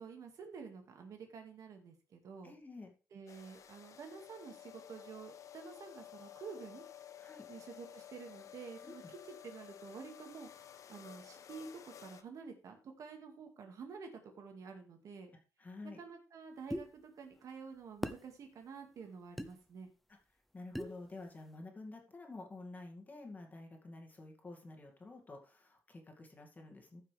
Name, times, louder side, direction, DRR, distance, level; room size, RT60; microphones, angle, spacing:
voice 1, 0.0-2.5 3.1-6.8 7.5-10.5 10.9-15.3 16.0-19.9, right 5 dB, 70° right, 4 dB, 2.1 m, -50 dB
voice 2, 2.4-2.9 7.2-7.5 8.8-9.1 15.6-16.0 20.5-27.0, left 2 dB, 30° left, 2 dB, 2.2 m, -50 dB
sound 1, 3.3-12.2, left 10 dB, 60° left, 0.8 m, -54 dB
sound 2, 16.7-16.9 18.0-18.2 19.4-19.5 20.7-21.0, equal, ahead, 0.7 m, -38 dB
14.5 x 5.8 x 3.4 m, 0.34 s
cardioid pair, 110°, 6 cm